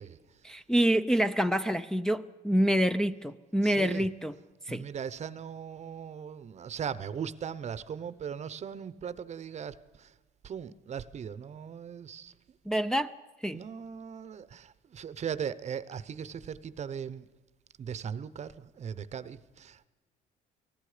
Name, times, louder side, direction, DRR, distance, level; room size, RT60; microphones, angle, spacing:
voice 1, 0.4-4.3 4.7-4.8 12.7-13.1 13.4-13.6, equal, 5° left, 0.6 m, -27 dB
voice 2, 3.6-4.1 4.7-10.1 10.4-12.3 13.5-17.3 17.8-19.9, right 7 dB, 40° right, 0.9 m, -39 dB
29.0 x 19.0 x 5.0 m
cardioid pair, 110°, 17 cm